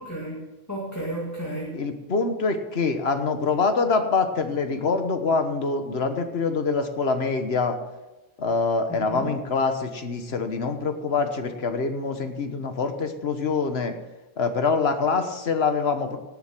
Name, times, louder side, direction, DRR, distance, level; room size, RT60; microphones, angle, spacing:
voice 1, 0.0-1.8 8.9-9.3, right 1 dB, 15° left, -5 dB, 2.1 m, -33 dB
voice 2, 1.7-7.8 8.4-13.9 14.4-16.2, left 4 dB, 85° left, 7 dB, 1.5 m, -25 dB
18.0 x 6.8 x 6.1 m, 1.1 s
omnidirectional pair, 1.0 m